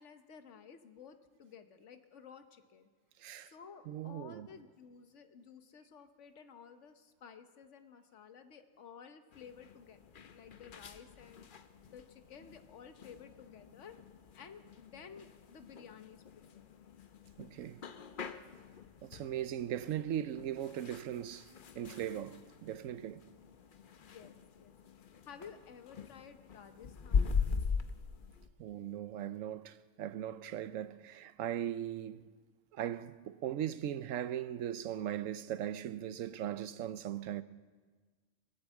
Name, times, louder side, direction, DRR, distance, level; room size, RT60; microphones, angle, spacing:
voice 1, 0.0-2.9 3.4-10.1 10.3-11.5 11.9-13.9 14.3-16.7 23.9-24.7 25.2-27.7, left 6 dB, 70° left, 1.3 m, -54 dB
voice 2, 3.2-3.5 3.9-4.5 17.4-17.8 19.0-23.2 28.6-32.3 32.7-37.4, right 11 dB, 85° right, 1.1 m, -39 dB
sound 1, 9.3-28.5, left 5 dB, 50° left, 0.8 m, -41 dB
22.0 x 8.1 x 8.1 m
omnidirectional pair, 1.3 m